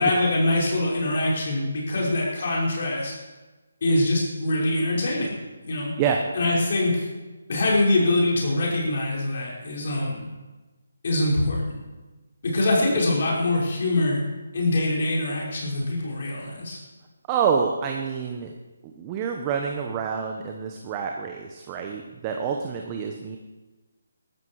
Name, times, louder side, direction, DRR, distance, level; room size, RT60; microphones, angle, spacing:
voice 1, 0.0-3.1 3.8-5.4 5.6-5.9 6.3-7.1 7.5-10.3 11.0-11.8 12.4-14.2 14.5-16.8, left 2 dB, 50° left, -4 dB, 5.7 m, -24 dB
voice 2, 17.3-18.5 19.0-23.4, right 6 dB, 20° right, 2 dB, 1.1 m, -27 dB
14.0 x 13.5 x 4.9 m, 1.2 s
figure-of-eight pair, 155°, 0 cm